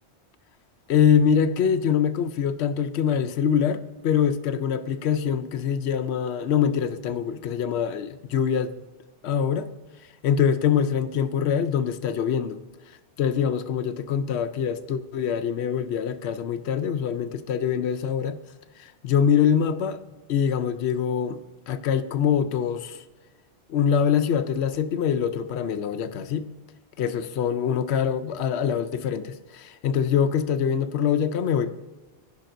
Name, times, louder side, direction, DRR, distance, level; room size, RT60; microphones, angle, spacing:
voice 1, 0.9-8.8 9.2-9.7 10.2-12.6 13.2-18.4 18.8-20.0 20.3-23.0 23.7-26.5 27.0-31.7, left 8 dB, 80° left, 0.9 m, -24 dB
14.5 x 5.6 x 2.6 m
omnidirectional pair, 1.1 m